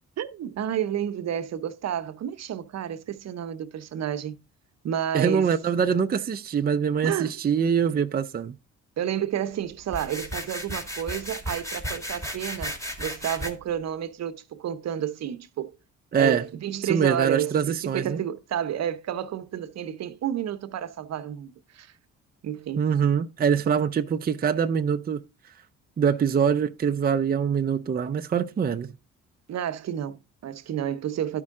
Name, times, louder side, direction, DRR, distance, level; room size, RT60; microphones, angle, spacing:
voice 1, 0.2-4.4 4.8-5.5 7.0-7.3 9.0-15.7 16.2-21.9 22.4-22.9 29.5-31.4, right 10 dB, 60° right, 0.8 m, -30 dB
voice 2, 5.1-8.5 16.1-16.4 16.9-18.2 22.8-25.2 26.0-28.9, right 7 dB, 30° right, 0.6 m, -24 dB
sound 1, 9.9-13.5, equal, 10° left, 1.9 m, -34 dB
12.0 x 5.3 x 3.6 m
cardioid pair, 90°, 30 cm